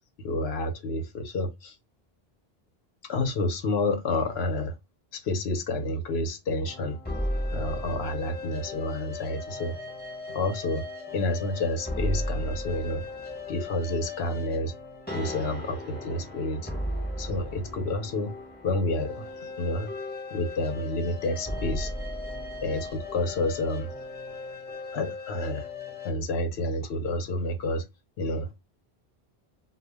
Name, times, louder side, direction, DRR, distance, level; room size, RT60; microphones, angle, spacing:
voice 1, 0.2-1.7 3.1-4.7 5.1-7.0 7.5-9.8 10.3-10.8 11.1-13.0 13.5-14.7 15.1-16.7 17.2-18.3 18.6-19.9 20.3-21.9 22.6-23.9 24.9-25.7 26.0-27.8 28.2-28.5, left 2 dB, 85° left, 0.9 m, -29 dB
sound 1, 6.6-26.1, left 1 dB, 10° left, 0.8 m, -36 dB
2.2 x 2.2 x 3.3 m
omnidirectional pair, 1.1 m